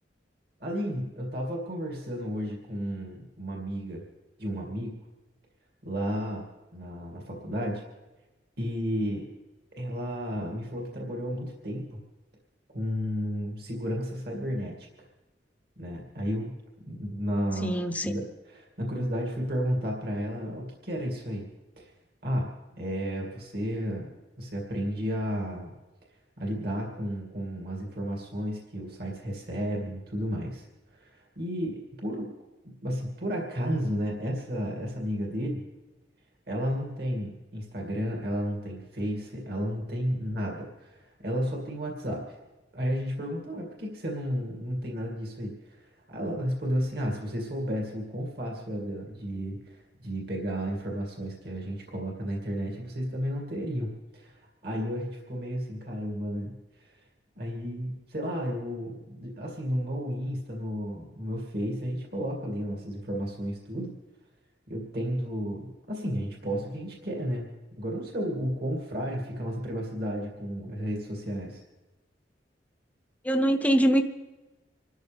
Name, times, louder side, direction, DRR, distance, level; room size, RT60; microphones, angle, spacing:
voice 1, 0.6-4.0 4.4-4.9 5.8-6.4 6.7-7.8 8.6-9.3 9.8-12.0 12.7-14.7 15.8-16.5 16.8-17.7 18.0-21.5 21.8-21.9 22.2-22.5 22.8-24.1 24.4-25.7 26.4-30.6 30.9-32.3 32.8-35.6 36.5-42.4 42.7-56.6 56.8-56.9 57.4-64.0 64.7-67.5 67.8-71.6, equal, 60° right, -1 dB, 2.4 m, -32 dB
voice 2, 17.6-18.2 73.2-74.0, right 1 dB, 10° left, 6 dB, 0.8 m, -23 dB
26.5 x 13.0 x 3.5 m, 1.1 s
head